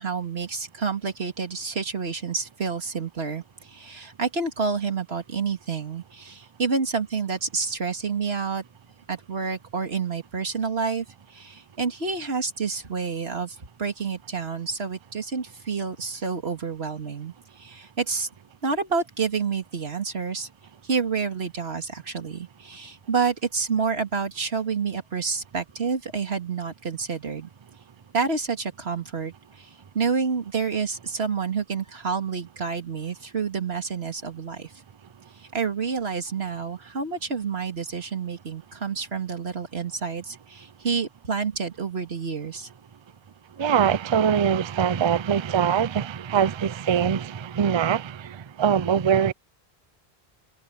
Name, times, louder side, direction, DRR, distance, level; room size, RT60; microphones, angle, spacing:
voice 1, 0.0-8.6 9.1-18.3 18.6-20.5 20.8-27.5 28.1-29.7 29.9-34.7 35.4-42.7, right 5 dB, 70° right, 2.5 m, -29 dB
voice 2, 43.6-49.3, right 8 dB, 35° right, 0.5 m, -23 dB
omnidirectional pair, 1.1 m